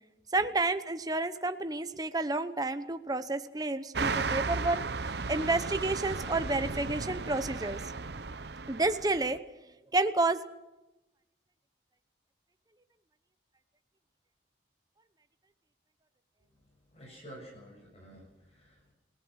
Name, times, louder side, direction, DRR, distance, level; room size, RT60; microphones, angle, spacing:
voice 1, 0.3-4.8 5.3-7.8 8.7-9.4 9.9-10.5, right 2 dB, 20° right, 10 dB, 0.9 m, -30 dB
sound 1, 3.9-9.4, right 4 dB, 60° right, 0.9 m, -35 dB
voice 2, 16.9-18.9, right 1 dB, 35° left, -1 dB, 7.0 m, -50 dB
29.0 x 18.0 x 6.4 m, 0.97 s
head